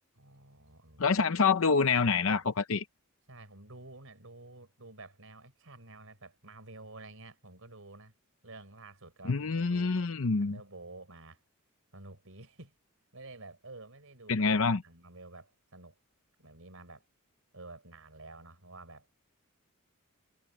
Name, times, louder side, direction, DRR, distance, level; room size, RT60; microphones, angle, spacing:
voice 1, 0.2-1.1 1.9-2.6 3.3-8.1 8.4-10.0 10.4-11.4 11.9-12.7 13.1-14.5 14.8-16.0 16.4-17.1 17.5-19.1, right 2 dB, 65° right, 5.3 m, -50 dB
voice 2, 1.0-2.9 9.2-10.6 14.3-14.8, left 4 dB, 65° left, 0.7 m, -26 dB
head